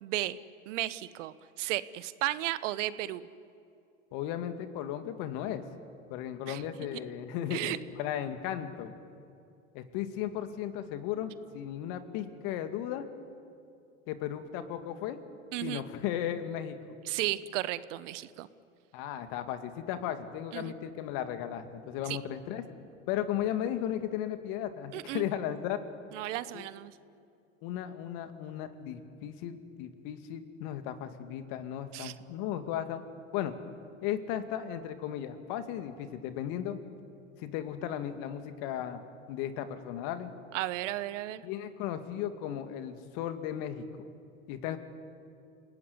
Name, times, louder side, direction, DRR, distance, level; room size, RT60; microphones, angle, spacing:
voice 1, 0.0-0.4 0.7-3.3 6.5-6.6 7.5-7.8 15.5-15.8 17.1-18.5 20.5-20.7 22.1-22.2 24.9-25.2 26.1-26.9 31.9-32.1 40.5-41.4, right 15 dB, 70° right, 16 dB, 1.1 m, -34 dB
voice 2, 4.1-5.6 6.1-8.9 9.7-13.1 14.1-15.2 15.6-16.8 18.9-22.6 23.1-25.8 26.5-26.6 27.6-33.0 33.3-33.5 34.0-36.8 37.4-39.0 39.3-40.3 41.4-43.9 44.5-44.8, left 10 dB, 55° left, 9 dB, 2.3 m, -35 dB
28.5 x 18.0 x 9.7 m, 2.5 s
hypercardioid pair, 95°, 39 cm